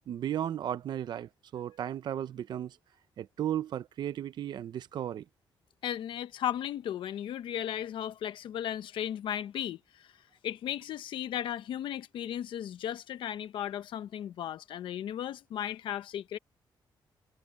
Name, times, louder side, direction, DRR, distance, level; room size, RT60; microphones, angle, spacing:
voice 1, 0.1-2.8 3.2-5.2, right 10 dB, 60° right, 0.8 m, -35 dB
voice 2, 5.8-10.1 10.4-16.4, left 10 dB, 80° left, 1.0 m, -35 dB
wide cardioid pair, 175°, 8 cm